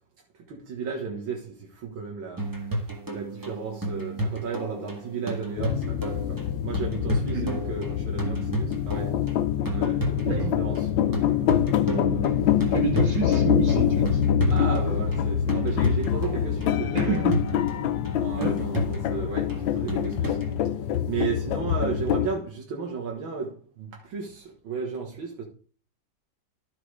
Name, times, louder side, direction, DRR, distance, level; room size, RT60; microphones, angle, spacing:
voice 1, 0.4-2.5 3.1-9.2 9.6-11.6 14.5-17.3 18.2-20.4 21.1-25.4, right 5 dB, 85° right, 2.2 m, -34 dB
sound 1, 2.4-20.5, right 1 dB, 10° right, 1.5 m, -32 dB
sound 2, 5.6-22.3, left 9 dB, 75° left, 1.4 m, -25 dB
voice 2, 12.7-14.6 16.9-17.3 18.4-18.5, right 5 dB, 65° right, 2.8 m, -29 dB
12.5 x 4.9 x 4.8 m
omnidirectional pair, 2.1 m